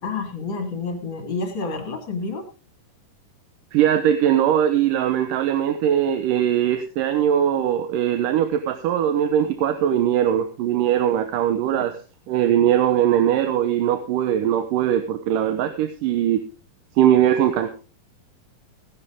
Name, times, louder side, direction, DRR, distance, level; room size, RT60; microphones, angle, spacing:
voice 1, 0.0-2.5 11.8-11.9, left 4 dB, 40° left, 6 dB, 2.5 m, -29 dB
voice 2, 3.7-12.0 12.3-16.4 17.0-17.7, right 10 dB, 80° right, 8 dB, 2.6 m, -20 dB
17.0 x 11.0 x 3.7 m, 0.34 s
omnidirectional pair, 3.8 m